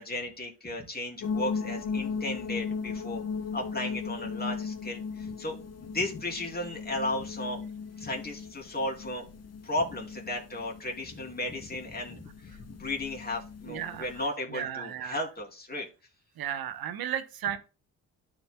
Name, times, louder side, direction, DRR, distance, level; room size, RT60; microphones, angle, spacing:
voice 1, 0.0-3.2 3.5-7.6 8.0-9.2 9.6-15.9, left 1 dB, 25° left, 2.7 m, -35 dB
sound 1, 1.2-14.3, left 5 dB, 40° left, 0.8 m, -37 dB
voice 2, 13.7-14.1 14.5-15.2 16.4-17.6, right 9 dB, 70° right, 1.0 m, -34 dB
12.5 x 5.2 x 2.2 m
cardioid pair, 85°, 38 cm